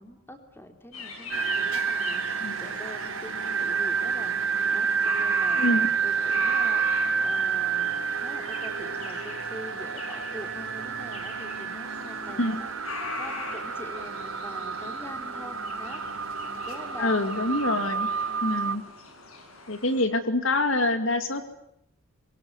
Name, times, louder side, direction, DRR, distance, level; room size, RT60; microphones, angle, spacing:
voice 1, 0.0-4.3 4.7-16.0 16.4-17.2, equal, 10° left, 6 dB, 3.6 m, -44 dB
sound 1, 0.9-20.0, left 4 dB, 85° left, 6.1 m, -41 dB
sound 2, 1.3-18.7, right 6 dB, 80° right, 4.3 m, -29 dB
voice 2, 17.0-18.1 18.4-18.8 19.7-21.4, left 2 dB, 65° left, 9 dB, 2.2 m, -25 dB
25.0 x 23.0 x 9.6 m, 0.78 s
head